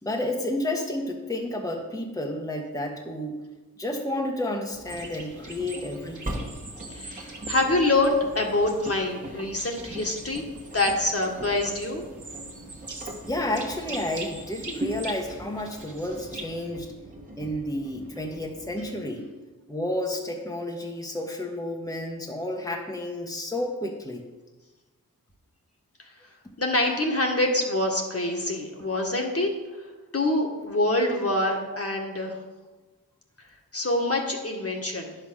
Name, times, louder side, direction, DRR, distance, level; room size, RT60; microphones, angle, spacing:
voice 1, 0.0-3.4 3.8-6.5 13.2-16.9 17.4-19.3 19.7-24.2, left 1 dB, 10° left, 0 dB, 1.3 m, -31 dB
Engine, 4.7-18.9, right 1 dB, 20° right, 1.6 m, -41 dB
sound 1, 4.9-16.7, right 3 dB, 55° right, 1.4 m, -43 dB
voice 2, 6.9-10.5 10.7-12.0 26.6-29.5 30.1-32.4 33.7-35.1, left 2 dB, 40° left, 1 dB, 1.8 m, -25 dB
9.8 x 5.6 x 6.4 m, 1.2 s
cardioid pair, 50°, 36 cm